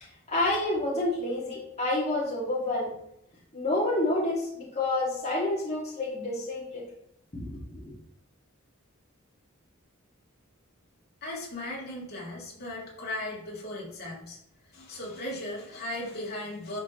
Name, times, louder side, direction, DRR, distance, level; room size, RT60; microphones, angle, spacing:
voice 1, 0.3-2.9 3.5-6.8 7.4-7.9, left 2 dB, 30° left, -6 dB, 2.9 m, -29 dB
voice 2, 11.2-14.4 14.7-16.8, left 1 dB, 50° left, -4 dB, 3.2 m, -37 dB
11.5 x 5.0 x 3.3 m, 0.73 s
head